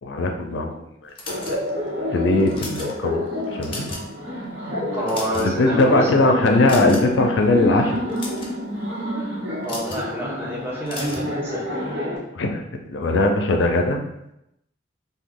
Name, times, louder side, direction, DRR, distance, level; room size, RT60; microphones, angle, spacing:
voice 1, 0.0-1.1 1.5-1.6 2.1-3.9 5.4-8.0 12.3-14.0, left 2 dB, 80° left, 3 dB, 0.4 m, -20 dB
sound 1, 1.2-1.9 2.4-2.9 3.4-4.1 4.4-4.6 4.9-5.7 6.7-7.2 8.0-8.5 9.6-10.1 10.9-11.3, left 2 dB, 30° left, 0.5 m, -35 dB
Laughter, 1.3-12.2, left 1 dB, 70° right, 0.9 m, -29 dB
voice 2, 4.9-6.5 9.2-11.7, equal, 10° right, -5 dB, 0.8 m, -29 dB
3.0 x 2.2 x 3.6 m, 0.82 s
head